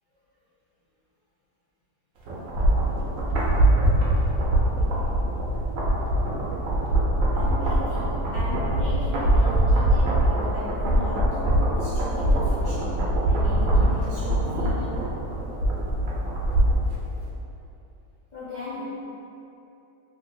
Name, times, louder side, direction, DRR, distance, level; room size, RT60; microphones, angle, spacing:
sound 1, 2.3-16.9 17.2-17.3, right 1 dB, 70° right, 0.8 m, -23 dB
voice 1, 7.3-15.1 18.3-18.8, left 2 dB, 70° left, -14 dB, 0.4 m, -37 dB
2.9 x 2.6 x 2.6 m, 2.9 s
omnidirectional pair, 1.8 m